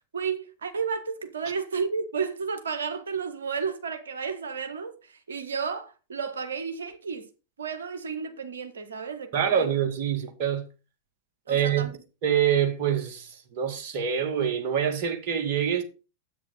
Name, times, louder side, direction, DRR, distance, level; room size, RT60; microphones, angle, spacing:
voice 1, 0.1-7.3 7.6-9.7 11.5-12.0, right 5 dB, 70° right, 1.4 m, -32 dB
voice 2, 9.3-10.6 11.5-11.9 12.2-15.8, right 8 dB, 45° right, 2.2 m, -25 dB
10.0 x 8.4 x 4.2 m
figure-of-eight pair, 90°, 0 cm